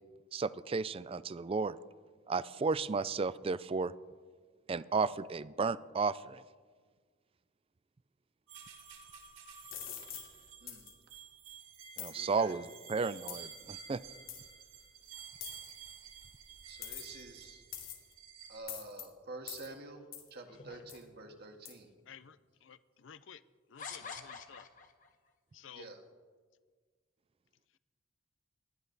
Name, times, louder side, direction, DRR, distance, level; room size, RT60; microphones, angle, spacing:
voice 1, 0.3-1.8 2.3-3.9 4.7-6.4 12.0-14.0, right 4 dB, 30° right, 17 dB, 0.4 m, -33 dB
sound 1, 8.5-18.6, right 7 dB, 90° right, 4.7 m, -52 dB
sound 2, 9.7-10.3 10.7-10.9 12.0-12.2 13.3-13.5 14.3-14.4 15.4-15.7 16.8-17.2 17.7-18.1 18.7-19.0 19.5-19.7 20.1-20.3 20.9-21.0 21.7-21.8, left 10 dB, 90° left, 2.5 m, -44 dB
voice 2, 12.1-12.6 16.7-17.7 18.5-21.9 25.7-26.0, right 2 dB, 55° right, 4 dB, 1.8 m, -49 dB
sound 3, 20.5-21.5 22.3-22.4 23.8-25.1, left 5 dB, 40° left, 1.1 m, -47 dB
voice 3, 23.0-23.4 23.7-24.6 25.6-25.8, left 7 dB, 65° left, 16 dB, 0.5 m, -51 dB
19.5 x 12.5 x 4.0 m, 1.6 s
head